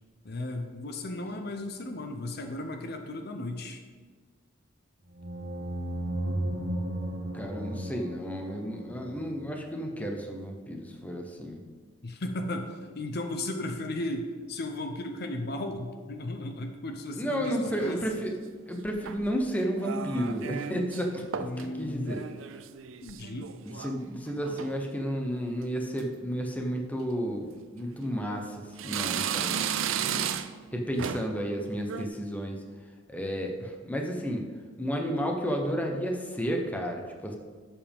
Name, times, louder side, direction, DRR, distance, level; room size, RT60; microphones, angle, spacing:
voice 1, 0.2-3.8 12.0-18.0 21.4-22.1 23.0-23.5, left 1 dB, 55° left, 5 dB, 0.8 m, -35 dB
sound 1, 5.1-9.7, right 1 dB, 50° right, 1.3 m, -35 dB
voice 2, 7.3-11.6 17.1-18.3 18.7-21.2 21.8-22.2 23.6-29.6 30.0-30.2 30.7-32.6 33.1-34.5 34.8-37.4, equal, 10° left, 2 dB, 1.0 m, -32 dB
sound 2, 17.4-18.2 18.9-19.4 19.8-21.1 21.3-21.7 22.0-24.0 24.3-24.8 25.3-25.6 26.0-26.1 27.0-27.2 27.8-28.4 28.8-30.7 31.0-31.4 31.8-32.1, right 8 dB, 85° right, 0.5 m, -34 dB
12.5 x 7.3 x 3.6 m, 1.5 s
head